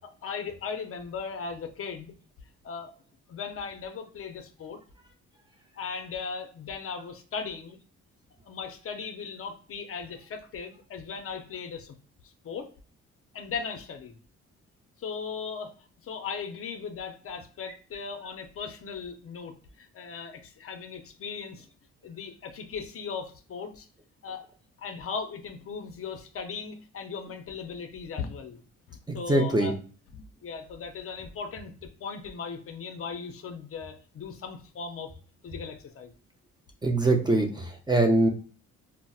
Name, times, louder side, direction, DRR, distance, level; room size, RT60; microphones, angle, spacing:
voice 1, 0.0-2.1 2.6-2.9 3.3-4.8 5.8-7.8 8.5-12.0 12.4-12.7 13.3-14.2 15.0-15.7 16.0-21.7 22.0-23.9 24.2-24.4 24.8-28.6 28.9-29.8 30.1-35.1 35.4-36.1, left 5 dB, 50° left, 6 dB, 0.5 m, -38 dB
voice 2, 29.1-29.7 36.8-38.3, right 2 dB, 15° right, 2 dB, 0.5 m, -23 dB
4.0 x 2.0 x 2.3 m, 0.40 s
cardioid pair, 90°, 30 cm